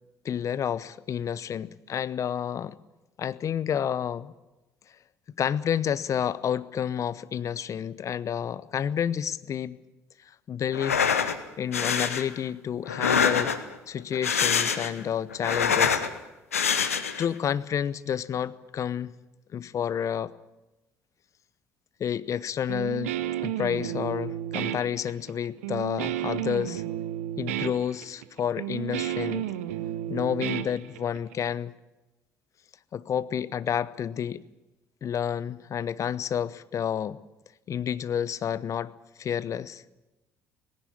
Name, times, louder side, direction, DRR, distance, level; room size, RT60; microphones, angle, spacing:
voice 1, 0.2-2.8 3.2-4.3 5.4-9.8 10.5-11.1 11.6-13.6 13.9-16.0 17.2-19.1 19.5-20.3 22.0-26.8 27.4-29.5 30.1-31.7 32.9-34.4 35.0-37.2 37.7-38.9 39.2-39.8, left 8 dB, 45° left, 17 dB, 0.8 m, -30 dB
sound 1, 10.7-11.4 11.7-12.2 12.9-13.7 14.1-15.0 15.3-16.1 16.5-17.3, left 7 dB, 90° left, 1.0 m, -25 dB
Guitar, 22.7-31.3, right 12 dB, 80° right, 0.8 m, -32 dB
18.5 x 16.0 x 8.7 m, 1.0 s
hypercardioid pair, 55°, 7 cm